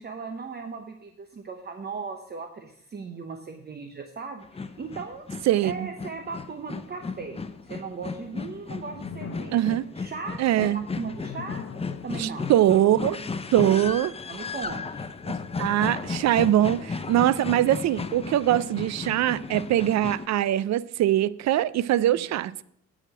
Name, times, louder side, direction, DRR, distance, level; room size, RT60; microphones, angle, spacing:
voice 1, 0.0-11.6 12.0-12.5 13.6-15.1, right 4 dB, 35° right, 0.8 m, -38 dB
sound 1, 4.4-20.3, left 4 dB, 20° left, 0.6 m, -35 dB
voice 2, 5.5-5.9 9.5-9.8 10.4-10.8 12.2-13.2 13.5-14.1 15.6-22.6, right 12 dB, 65° right, 0.5 m, -22 dB
sound 2, 8.6-15.4, left 6 dB, 45° left, 1.0 m, -45 dB
8.4 x 5.0 x 7.6 m
cardioid pair, 90°, 30 cm